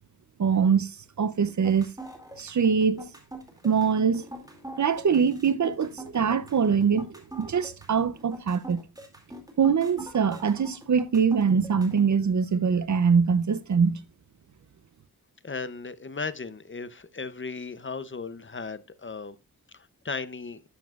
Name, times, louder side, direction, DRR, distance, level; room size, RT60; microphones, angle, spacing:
voice 1, 0.4-0.9 1.2-1.9 2.4-3.0 3.6-4.2 4.8-7.1 7.4-8.8 9.6-14.0, right 6 dB, 50° right, 0.6 m, -23 dB
sound 1, 1.5-12.1, right 1 dB, 10° right, 2.3 m, -43 dB
voice 2, 15.4-19.4 19.7-20.6, left 4 dB, 35° left, 0.7 m, -36 dB
11.5 x 7.1 x 2.3 m
wide cardioid pair, 100°, 37 cm